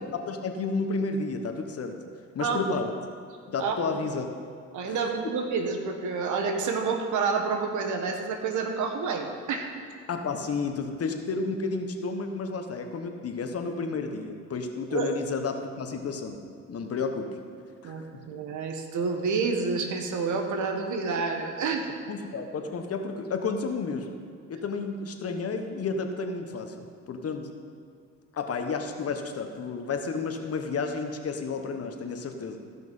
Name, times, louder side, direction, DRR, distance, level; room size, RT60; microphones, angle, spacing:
voice 1, 0.1-2.0 2.3-2.9 3.5-4.3 4.9-5.0 10.1-16.4 16.7-17.3 17.8-18.2 22.1-24.1 24.5-27.5 28.3-32.6, left 4 dB, 50° left, 5 dB, 1.2 m, -31 dB
voice 2, 3.6-4.0 4.7-9.7 14.9-15.1 17.8-22.0, right 4 dB, 75° right, 4 dB, 1.4 m, -29 dB
15.0 x 5.9 x 5.6 m, 2.4 s
cardioid pair, 90°, 30 cm